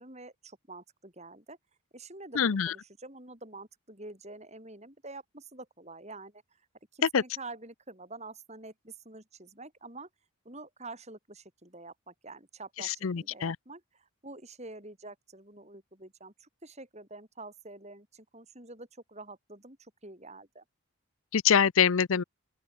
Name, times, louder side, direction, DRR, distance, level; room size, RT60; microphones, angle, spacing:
voice 1, 0.0-1.6 1.9-6.4 6.9-10.1 10.5-20.6, right 2 dB, 30° right, 5.3 m, -47 dB
voice 2, 2.4-2.7 7.1-7.2 12.8-13.6 21.3-22.2, left 7 dB, 70° left, 0.6 m, -25 dB
open air
head